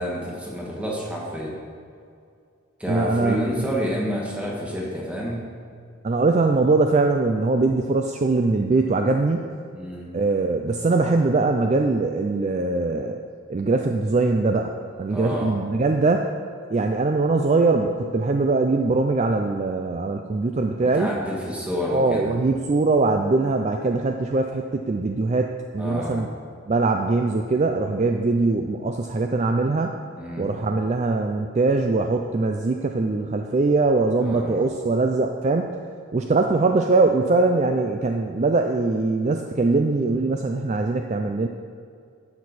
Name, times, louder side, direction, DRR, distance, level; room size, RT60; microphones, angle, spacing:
voice 1, 0.0-1.5 2.8-5.4 9.7-10.1 15.1-15.5 20.8-22.4 25.8-26.3 30.2-30.5 34.2-34.7, equal, 5° right, -4 dB, 1.5 m, -29 dB
voice 2, 2.9-3.7 6.0-9.5 10.1-13.2 13.5-14.7 15.0-16.3 16.7-21.1 21.9-26.3 26.7-30.0 30.4-35.8 36.1-41.5, right 3 dB, 35° right, 4 dB, 0.3 m, -22 dB
12.0 x 6.6 x 4.1 m, 2.3 s
head